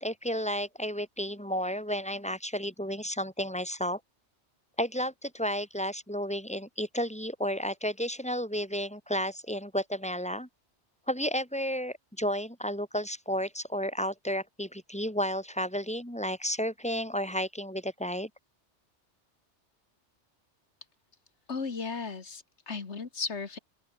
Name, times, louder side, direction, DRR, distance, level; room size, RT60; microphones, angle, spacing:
voice 1, 0.0-4.0 4.8-10.5 11.1-18.3, equal, 5° left, 4.1 m, -32 dB
voice 2, 21.5-23.6, left 4 dB, 70° left, 2.2 m, -35 dB
open air
omnidirectional pair, 1.2 m